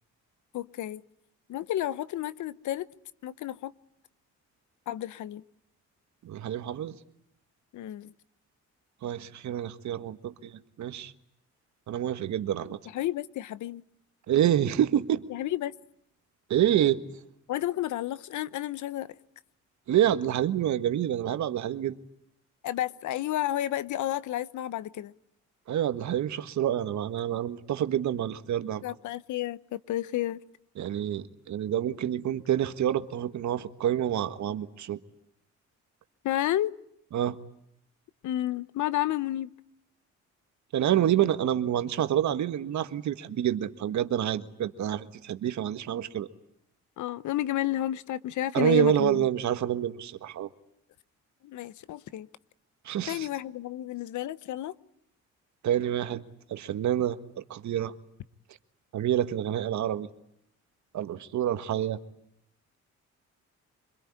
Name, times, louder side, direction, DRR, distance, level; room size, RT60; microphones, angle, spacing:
voice 1, 0.5-1.0 1.5-2.9 3.2-3.7 4.9-5.4 7.7-8.1 12.9-13.8 15.3-15.7 17.5-19.1 22.6-25.1 28.8-30.4 36.2-36.7 38.2-39.5 47.0-49.3 51.4-52.3 53.1-54.8, left 13 dB, 75° left, 1.0 m, -31 dB
voice 2, 6.2-7.0 9.0-11.1 11.9-12.8 14.3-15.2 16.5-17.0 19.9-21.9 25.7-28.8 30.8-35.0 37.1-37.4 40.7-46.3 48.5-50.5 52.8-53.3 55.6-56.2 56.5-57.2 57.5-57.9 58.9-60.1 60.9-62.0, right 11 dB, 70° right, 1.6 m, -27 dB
26.0 x 21.5 x 9.9 m
cardioid pair, 90°, 30 cm